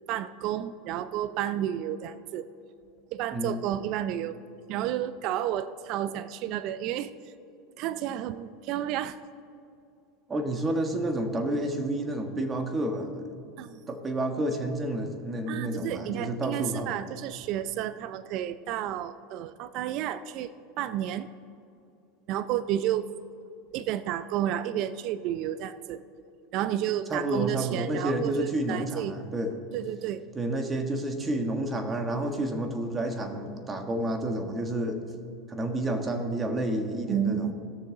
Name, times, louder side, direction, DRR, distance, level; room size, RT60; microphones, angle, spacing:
voice 1, 0.1-2.5 3.1-4.4 4.7-7.1 7.8-9.2 13.6-14.0 15.5-21.3 22.3-23.1 23.7-26.0 26.5-29.2 29.7-30.2 37.1-37.5, right 11 dB, 55° right, 14 dB, 0.4 m, -31 dB
voice 2, 3.3-3.6 10.3-13.3 13.9-17.0 27.1-29.5 30.3-35.0 35.5-37.5, right 1 dB, 25° right, 6 dB, 1.5 m, -30 dB
17.5 x 6.7 x 3.8 m, 2.6 s
hypercardioid pair, 100°, 0 cm